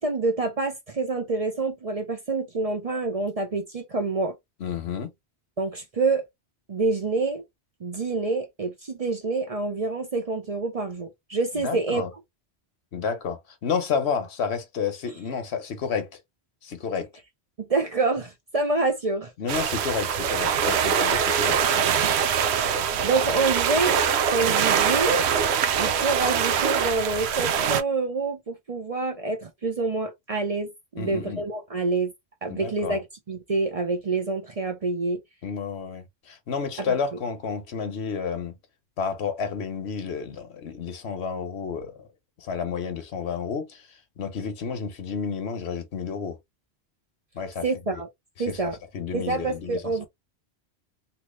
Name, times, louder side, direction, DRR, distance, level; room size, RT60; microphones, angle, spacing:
voice 1, 0.0-4.3 5.6-6.2 6.7-7.4 7.8-12.0 17.6-19.3 22.5-24.0 24.3-25.2 25.8-32.1 32.4-35.2 36.8-36.9 47.6-48.1 48.4-48.8 49.1-50.1, right 3 dB, 40° right, 0.6 m, -27 dB
voice 2, 4.6-5.1 11.5-12.1 12.9-16.1 16.6-17.1 19.4-21.6 31.0-31.4 32.5-33.0 35.4-38.5 39.0-42.1 42.4-43.9 44.2-46.4 47.3-47.6 48.5-49.8, left 6 dB, 75° left, 1.1 m, -30 dB
sound 1, 19.5-27.8, right 7 dB, 80° right, 0.9 m, -23 dB
3.0 x 2.9 x 3.1 m
omnidirectional pair, 1.1 m